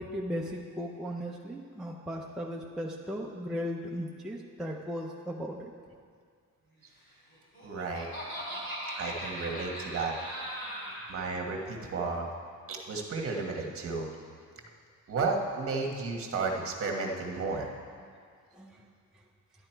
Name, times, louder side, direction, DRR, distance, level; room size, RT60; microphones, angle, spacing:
voice 1, 0.0-5.7 8.9-9.0 10.8-10.9 18.5-18.8, equal, ahead, -2 dB, 0.6 m, -37 dB
Laughter, 7.3-11.1, equal, 35° left, 3.6 m, -39 dB
voice 2, 7.6-8.1 8.9-10.1 11.1-12.3 12.7-14.1 15.1-17.7, right 4 dB, 45° right, 1 dB, 1.4 m, -33 dB
12.0 x 11.0 x 4.5 m, 2.1 s
cardioid pair, 165°, 33 cm